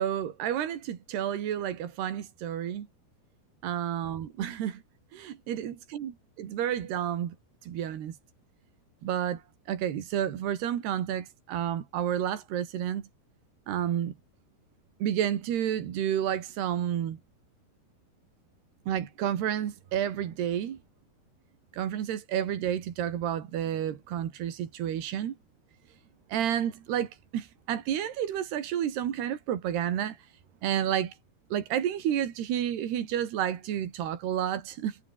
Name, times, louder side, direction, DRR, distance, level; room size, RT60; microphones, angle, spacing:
voice 1, 0.0-2.9 3.6-4.8 5.1-6.1 6.4-7.4 7.6-8.2 9.0-9.4 9.7-13.1 13.7-14.1 15.0-17.2 18.9-20.8 21.7-25.3 26.3-30.2 30.6-31.2 31.5-35.0, right 10 dB, 85° right, 4.4 m, -30 dB
omnidirectional pair, 4.6 m